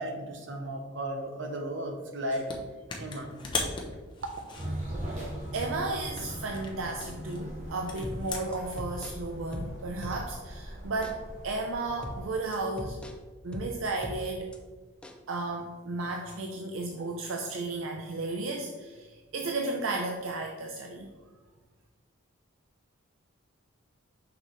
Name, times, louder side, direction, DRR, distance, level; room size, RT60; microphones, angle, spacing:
voice 1, 0.0-2.5 3.0-3.3, right 1 dB, 60° right, 3 dB, 1.0 m, -35 dB
sound 1, 2.3-2.6 2.9-5.7 6.1-8.8, left 3 dB, 20° left, 0.8 m, -38 dB
sound 2, 4.6-12.3, equal, 35° right, 1.5 m, -40 dB
voice 2, 5.5-13.0 13.4-14.5 15.3-21.1, right 2 dB, 75° right, 2 dB, 0.6 m, -34 dB
sound 3, 8.0-10.6 11.0-11.2 12.0-14.6 15.0-15.2, left 1 dB, 5° left, 0.3 m, -41 dB
6.2 x 6.0 x 3.3 m, 1.3 s
head